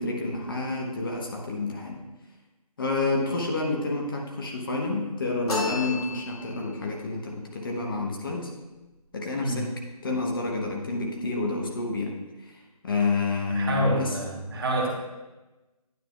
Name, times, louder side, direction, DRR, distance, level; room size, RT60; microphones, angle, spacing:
voice 1, 0.0-2.0 2.8-8.5 9.1-9.7 10.0-12.1 12.4-14.1, left 3 dB, 35° left, -1 dB, 1.0 m, -29 dB
sound 1, 5.5-6.7, left 3 dB, 70° left, 2.4 m, -31 dB
voice 2, 13.5-14.9, right 1 dB, 40° right, -1 dB, 1.3 m, -27 dB
9.5 x 7.2 x 2.4 m, 1.1 s
figure-of-eight pair, 160°, 20 cm